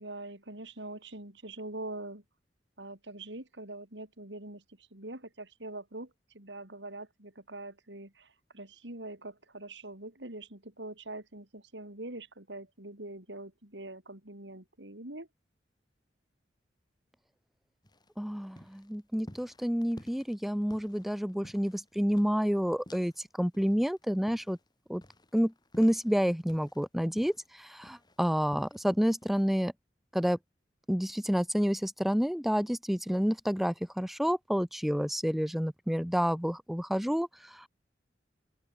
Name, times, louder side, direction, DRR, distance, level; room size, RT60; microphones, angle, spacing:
voice 1, 0.0-2.2 2.8-4.6 4.9-15.3, right 2 dB, 80° right, 4.9 m, -43 dB
sound 1, 17.8-23.3 23.5-26.9 27.2-28.9 29.2-29.4, equal, 25° left, 7.1 m, -54 dB
voice 2, 18.2-23.1 23.4-24.6 24.9-25.0 25.3-29.7 30.1-30.4 30.9-37.7, equal, ahead, 0.3 m, -29 dB
open air
head